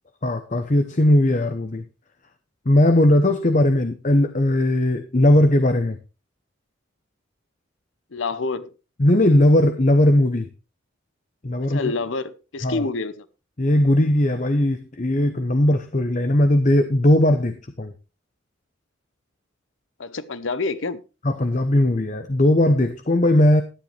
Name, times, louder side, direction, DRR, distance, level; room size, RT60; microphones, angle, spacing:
voice 1, 0.2-1.8 2.7-6.0 9.0-10.5 11.4-11.9 12.6-12.9 13.6-17.9 21.2-23.6, left 1 dB, 40° left, 0.8 m, -18 dB
voice 2, 8.1-8.7 11.7-13.3 20.0-21.0, left 3 dB, 75° left, 0.8 m, -27 dB
12.5 x 10.5 x 3.3 m
head